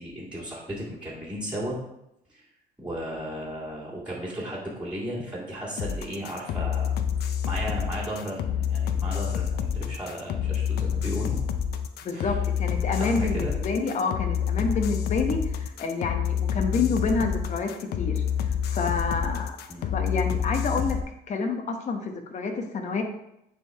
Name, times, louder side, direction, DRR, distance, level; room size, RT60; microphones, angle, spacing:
voice 1, 0.0-1.8 2.3-2.5 2.8-6.9 7.2-11.4 12.1-12.4 13.0-13.5 19.7-19.9, equal, 5° right, -7 dB, 2.0 m, -35 dB
sound 1, 5.8-21.0, left 8 dB, 70° left, 0.6 m, -28 dB
voice 2, 12.0-18.2 18.7-19.6 19.8-21.0 21.3-23.0, left 4 dB, 45° left, 5 dB, 1.0 m, -28 dB
9.2 x 3.8 x 3.5 m, 0.82 s
cardioid pair, 110°, 17 cm